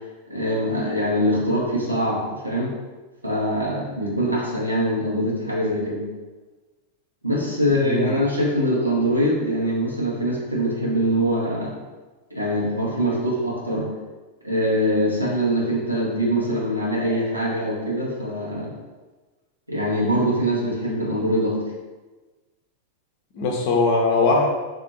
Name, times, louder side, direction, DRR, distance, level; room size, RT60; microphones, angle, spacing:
voice 1, 0.3-2.7 3.2-6.0 7.2-11.8 12.3-13.9 14.4-18.7 19.7-21.6, equal, 85° right, -5 dB, 1.0 m, -23 dB
voice 2, 7.7-8.2 23.3-24.5, left 3 dB, 50° left, 0 dB, 0.7 m, -20 dB
2.7 x 2.6 x 3.9 m, 1.2 s
figure-of-eight pair, 90°, 0 cm